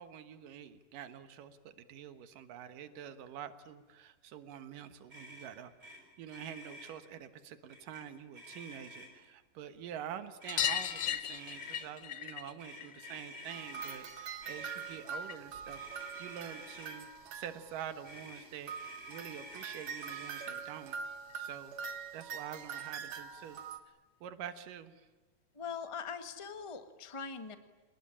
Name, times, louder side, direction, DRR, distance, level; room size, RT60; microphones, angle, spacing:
voice 1, 0.0-21.0 21.4-21.8 22.1-23.6 23.9-24.0 24.2-25.1, right 9 dB, 90° right, 10 dB, 3.0 m, -47 dB
Motor vehicle (road), 5.1-5.5 5.8-6.0 6.2-6.9 7.7-8.0 8.3-9.2 10.4-11.8 12.6-14.0 14.4-15.0 15.6-17.0 18.0-20.5, equal, 15° right, 8.1 m, -50 dB
sound 1, 10.5-15.6 15.9-17.0 18.4-18.5 18.7-18.8 19.1-19.2 20.5-20.6 20.9-21.0 21.3-21.4 22.6-22.7 23.5-23.6, left 10 dB, 80° left, 1.0 m, -39 dB
sound 2, 13.5-18.2 18.7-23.8, right 6 dB, 60° right, 2.7 m, -44 dB
voice 2, 25.5-27.5, left 6 dB, 20° left, 8 dB, 0.7 m, -42 dB
29.0 x 20.0 x 10.0 m, 1.2 s
omnidirectional pair, 3.7 m